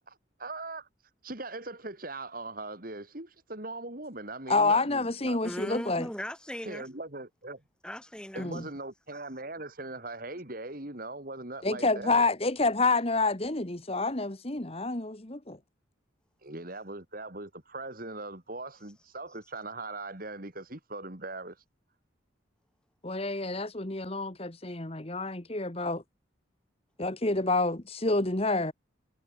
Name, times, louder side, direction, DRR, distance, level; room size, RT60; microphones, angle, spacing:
voice 1, 0.1-0.9 1.2-5.4 6.6-7.6 8.3-12.2 16.4-21.6, right 2 dB, 45° right, 3.0 m, -40 dB
voice 2, 4.5-6.1 8.4-8.6 11.6-15.6 23.0-26.0 27.0-28.7, left 3 dB, 30° left, 1.6 m, -28 dB
voice 3, 5.4-6.9 7.8-8.5, equal, 5° left, 3.7 m, -38 dB
head